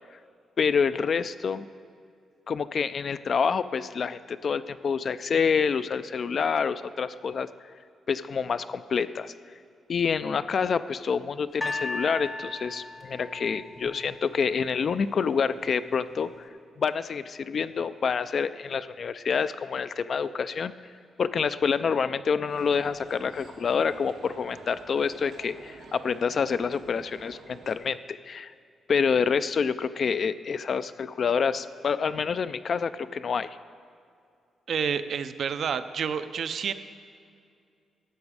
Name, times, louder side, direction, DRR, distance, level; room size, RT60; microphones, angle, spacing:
voice 1, 0.6-1.7 2.5-7.5 8.1-9.3 9.9-16.3 16.8-20.7 21.2-28.5 28.9-33.6, left 6 dB, 50° left, 14 dB, 0.3 m, -27 dB
sound 1, 11.6-14.8 15.6-15.7, left 2 dB, 20° left, 0.7 m, -36 dB
sound 2, 22.5-27.8, right 4 dB, 85° right, 1.1 m, -49 dB
voice 2, 34.7-36.7, right 7 dB, 60° right, 11 dB, 0.4 m, -29 dB
12.5 x 7.9 x 4.8 m, 2.4 s
cardioid pair, 120°, 0 cm